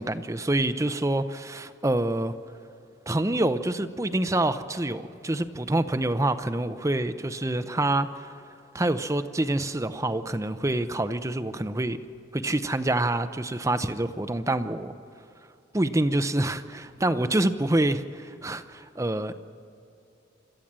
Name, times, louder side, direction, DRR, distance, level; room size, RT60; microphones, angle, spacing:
voice 1, 0.0-2.4 3.1-8.3 8.7-12.0 12.3-14.9 15.7-19.3, right 1 dB, 15° right, 11 dB, 0.6 m, -26 dB
26.0 x 14.0 x 7.5 m, 2.7 s
head